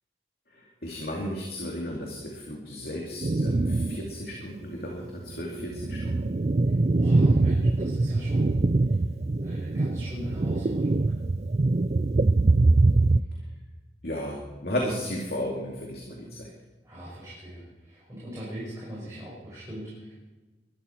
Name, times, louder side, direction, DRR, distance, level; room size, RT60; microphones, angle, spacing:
voice 1, 0.5-6.3 14.0-16.5, left 1 dB, 60° left, -1 dB, 2.5 m, -34 dB
sound 1, 3.2-4.1 4.5-4.6 5.3-13.2, right 2 dB, 35° right, 0.4 m, -23 dB
voice 2, 6.6-8.6 9.4-11.1 16.8-20.1, equal, 20° right, -8 dB, 6.0 m, -40 dB
21.5 x 13.0 x 4.5 m, 1.2 s
head